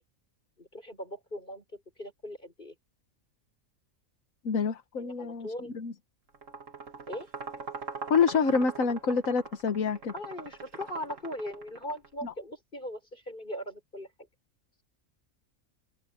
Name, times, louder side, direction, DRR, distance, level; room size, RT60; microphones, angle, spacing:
voice 1, 0.6-2.7 5.0-5.7 7.1-7.3 10.1-14.1, left 1 dB, 35° left, 6.9 m, -39 dB
voice 2, 4.5-5.9 8.1-10.1 12.2-12.3, left 5 dB, 80° left, 1.6 m, -27 dB
sound 1, 6.3-12.1, right 4 dB, 65° right, 2.9 m, -41 dB
open air
omnidirectional pair, 1.4 m